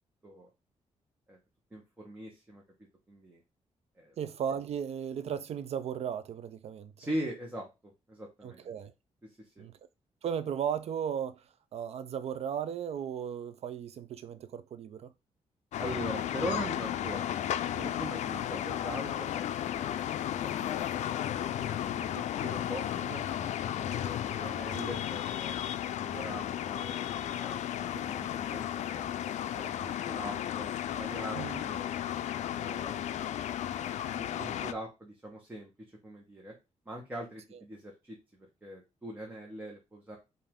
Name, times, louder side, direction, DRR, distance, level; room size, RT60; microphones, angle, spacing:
voice 1, 1.7-2.6 3.1-3.4 4.0-4.1 7.0-8.7 9.4-9.6 15.8-17.3 17.6-20.0 20.4-21.3 21.6-25.6 26.0-29.1 29.6-31.9 32.4-33.0 34.0-35.7 36.0-36.5 36.9-38.2 38.6-40.2, right 1 dB, 15° right, 1.0 m, -42 dB
voice 2, 4.2-6.9 8.4-8.9 9.6-9.8 10.2-15.1 31.3-31.7, right 8 dB, 60° right, 0.4 m, -36 dB
sound 1, 15.7-34.7, left 11 dB, 80° left, 0.4 m, -34 dB
5.4 x 2.6 x 3.5 m
wide cardioid pair, 165°, 12 cm